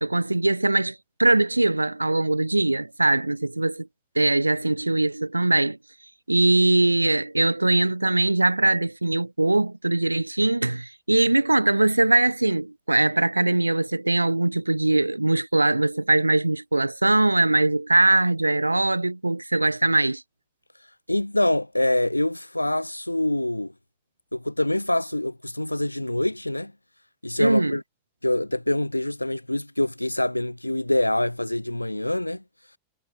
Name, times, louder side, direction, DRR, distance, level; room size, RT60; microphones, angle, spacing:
voice 1, 0.0-3.9 4.1-5.8 6.3-20.2 27.4-27.8, right 2 dB, 85° right, 2.9 m, -21 dB
voice 2, 21.1-23.7 24.3-26.7 27.2-27.8 28.2-32.4, left 1 dB, 85° left, 3.5 m, -25 dB
figure-of-eight pair, 90°, 0 cm